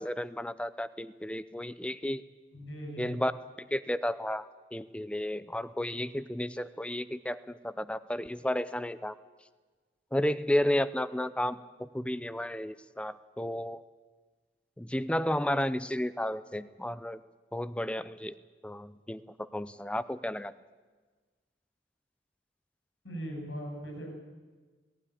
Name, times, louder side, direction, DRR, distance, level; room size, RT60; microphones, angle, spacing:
voice 1, 0.0-2.2 3.0-3.3 3.6-9.2 10.1-13.8 14.8-17.2 17.5-18.3 18.6-20.5, left 1 dB, 5° left, 15 dB, 0.6 m, -32 dB
voice 2, 2.5-3.3 12.0-12.2 23.0-24.1, right 1 dB, 80° left, 1 dB, 7.6 m, -40 dB
18.5 x 16.0 x 9.9 m, 1.4 s
head